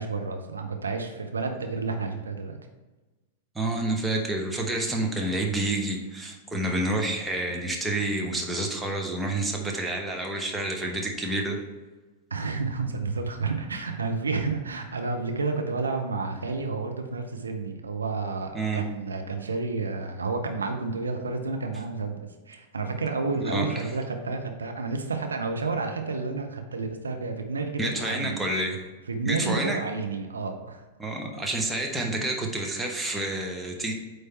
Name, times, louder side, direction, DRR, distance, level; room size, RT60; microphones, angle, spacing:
voice 1, 0.0-2.6 12.3-22.2 22.5-28.4 29.1-30.8 33.4-33.5, right 4 dB, 75° right, 4 dB, 0.6 m, -30 dB
voice 2, 3.5-11.6 18.5-18.8 23.5-23.9 27.8-28.8 29.2-29.8 31.0-33.9, right 2 dB, 10° right, 1 dB, 1.0 m, -29 dB
8.5 x 3.3 x 4.2 m, 1.2 s
figure-of-eight pair, 95°, 0 cm